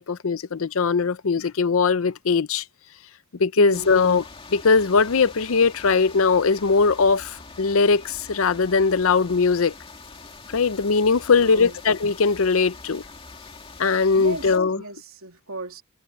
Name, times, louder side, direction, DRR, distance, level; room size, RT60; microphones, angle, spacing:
voice 1, 0.0-2.6 3.4-4.2 4.5-9.7 10.5-13.0 13.8-14.8, left 4 dB, 70° left, 0.6 m, -20 dB
voice 2, 3.6-4.2 11.3-11.8 14.2-15.8, right 2 dB, 75° right, 2.8 m, -37 dB
sound 1, 3.7-14.6, left 3 dB, 25° left, 2.4 m, -44 dB
head